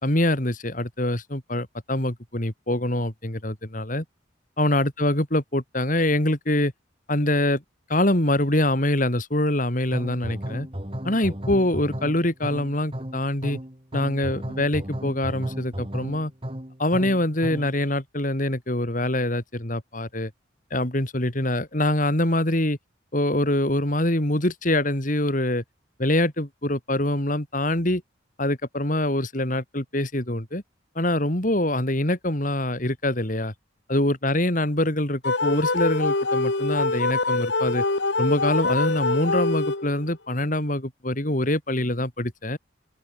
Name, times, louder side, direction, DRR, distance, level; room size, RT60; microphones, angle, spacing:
voice 1, 0.0-4.0 4.6-6.7 7.1-7.6 7.9-10.7 11.0-13.6 13.9-16.3 16.8-20.3 20.7-22.8 23.1-25.6 26.0-28.0 28.4-30.6 31.0-33.5 33.9-37.8 38.2-42.6, left 1 dB, 40° left, 3.4 m, -24 dB
sound 1, 9.9-17.8, equal, 30° right, 4.2 m, -34 dB
sound 2, 35.2-40.1, left 3 dB, 60° left, 1.8 m, -24 dB
open air
head